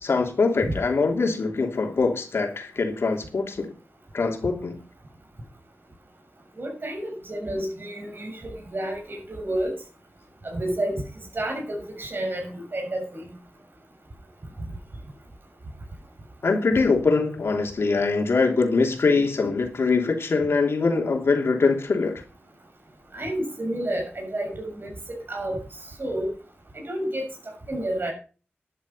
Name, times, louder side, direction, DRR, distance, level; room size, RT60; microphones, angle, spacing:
voice 1, 0.0-3.7 4.1-4.8 16.4-22.2, left 4 dB, 75° left, 3.0 m, -23 dB
voice 2, 6.6-8.3 8.7-9.7 10.4-10.9 11.3-13.2 23.1-25.6 26.0-26.3 26.9-27.2 27.7-28.1, right 1 dB, 55° right, 6.3 m, -30 dB
11.5 x 11.0 x 5.5 m
cardioid pair, 50°, 4 cm